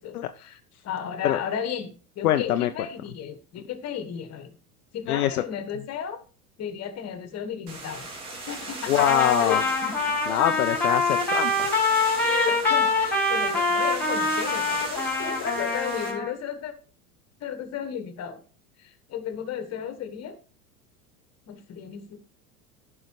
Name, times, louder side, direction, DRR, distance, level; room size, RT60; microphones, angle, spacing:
voice 1, 0.0-4.5 4.9-6.2 6.6-8.9 9.4-10.1 12.2-16.7 17.4-18.4 18.8-20.3 21.5-22.2, left 8 dB, 35° left, 10 dB, 1.5 m, -34 dB
voice 2, 2.2-2.7 5.1-5.4 8.9-9.6 10.3-11.7, left 12 dB, 75° left, 8 dB, 0.6 m, -23 dB
sound 1, 7.7-16.1, right 3 dB, 75° right, 2.8 m, -38 dB
Trumpet, 8.9-16.3, left 3 dB, 5° left, 3.8 m, -25 dB
14.0 x 5.6 x 3.2 m, 0.38 s
hypercardioid pair, 85°, 44 cm